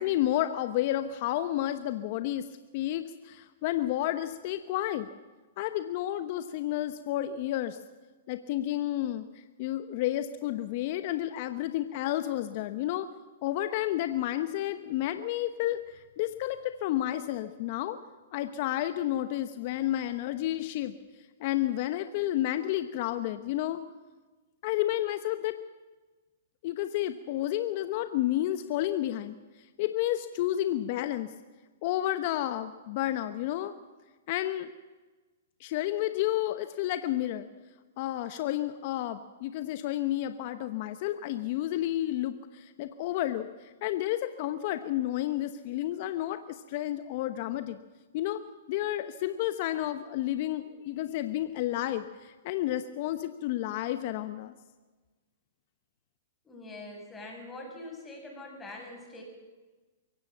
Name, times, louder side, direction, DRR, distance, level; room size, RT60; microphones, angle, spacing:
voice 1, 0.0-2.5 2.7-5.1 5.6-7.8 8.3-9.2 9.6-13.1 13.4-18.0 18.3-20.9 21.4-23.8 24.6-25.6 26.6-29.4 29.8-31.3 31.8-33.7 34.3-34.7 35.6-37.5 38.0-47.8 48.1-48.4 48.7-54.5, left 13 dB, 50° left, 10 dB, 1.0 m, -31 dB
voice 2, 56.4-59.2, left 2 dB, 15° left, 1 dB, 7.0 m, -44 dB
24.0 x 16.0 x 7.4 m, 1.3 s
hypercardioid pair, 120°, 0 cm